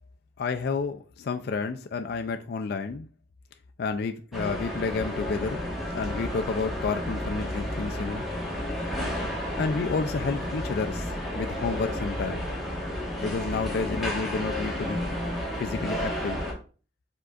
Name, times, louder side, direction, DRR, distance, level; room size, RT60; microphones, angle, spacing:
voice 1, 0.4-3.1 3.8-5.6 5.9-8.2 9.6-12.5 13.2-15.0 15.6-16.4, left 4 dB, 60° left, 0.3 m, -30 dB
sound 1, 4.3-16.5, equal, ahead, 1.2 m, -32 dB
4.9 x 3.6 x 2.4 m
head